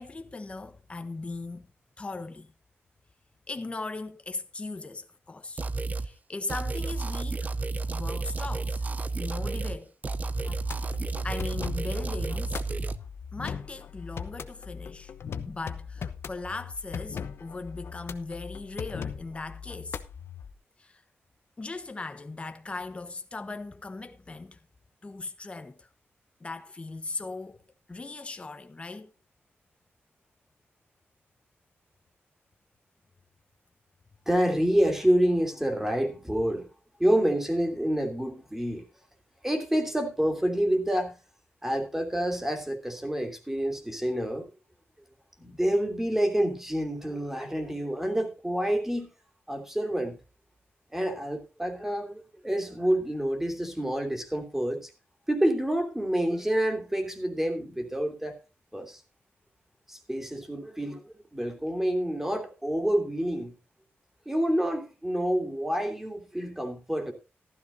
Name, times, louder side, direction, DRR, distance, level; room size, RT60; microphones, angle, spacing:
voice 1, 0.0-1.6 2.0-2.5 3.5-5.6 6.0-7.5 7.9-8.8 9.2-9.9 11.2-12.6 13.3-15.1 15.5-20.0 20.8-21.0 21.6-24.6 25.0-25.9 26.4-27.6 27.9-29.1, left 3 dB, 25° left, 1.1 m, -38 dB
sound 1, 5.6-6.1 6.5-9.8 10.0-13.0, right 3 dB, 35° right, 0.7 m, -31 dB
sound 2, 10.4-20.5, left 6 dB, 70° left, 1.0 m, -39 dB
voice 2, 34.3-36.7 37.0-38.8 39.4-41.2 41.6-44.5 45.4-49.1 49.5-50.2 50.9-54.9 55.3-58.4 58.7-59.0 59.9-63.5 64.2-67.1, right 1 dB, 10° right, 3.0 m, -28 dB
15.0 x 13.5 x 2.7 m
wide cardioid pair, 115°, 4 cm